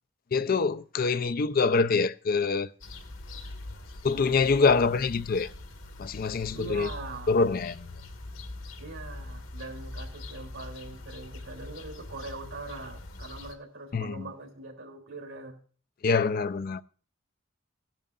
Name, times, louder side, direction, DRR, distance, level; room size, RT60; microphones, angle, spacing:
voice 1, 0.3-2.7 4.0-5.5 6.0-6.9 7.3-7.9 13.9-14.3 16.0-16.8, left 4 dB, 45° left, 0.4 m, -25 dB
sound 1, 2.8-13.5, left 2 dB, 85° left, 1.7 m, -43 dB
voice 2, 6.5-7.3 8.8-15.6, right 3 dB, 90° right, 3.5 m, -42 dB
17.5 x 10.5 x 2.5 m
head